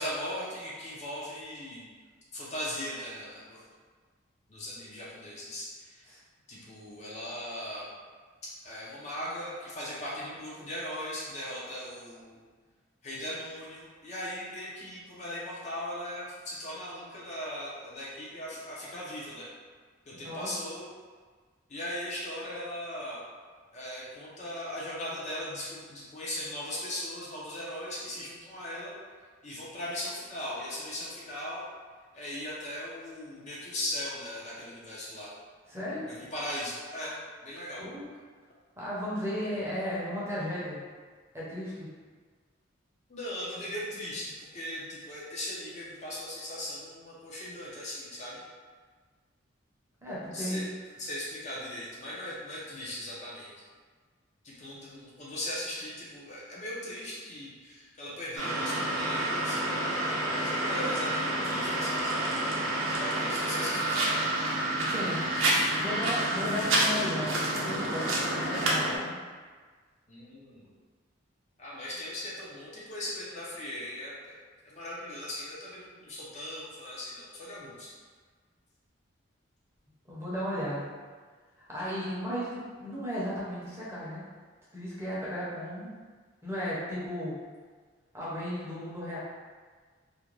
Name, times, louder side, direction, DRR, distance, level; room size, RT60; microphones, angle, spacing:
voice 1, 0.0-1.8 2.3-3.6 4.5-6.1 6.5-7.9 8.6-12.4 13.0-19.5 20.1-20.9 21.7-23.2 23.7-28.9 29.4-31.6 32.1-35.3 36.0-37.2 37.4-38.0 43.1-48.4 50.3-50.7 51.0-53.5 54.4-59.6 60.3-62.3 62.9-65.1 70.1-70.7 71.6-74.4 74.6-77.9, left 1 dB, 35° left, -7 dB, 0.5 m, -38 dB
voice 2, 35.7-36.0 37.8-38.0 38.8-40.8 41.3-41.9 50.0-50.6 64.9-65.2 65.8-69.1 80.1-80.8 81.6-84.2 84.7-85.9 86.4-87.4 88.1-89.2, equal, 15° right, -8 dB, 0.6 m, -35 dB
sound 1, 58.4-69.0, right 1 dB, 80° right, 0.5 m, -29 dB
2.4 x 2.1 x 3.0 m, 1.5 s
head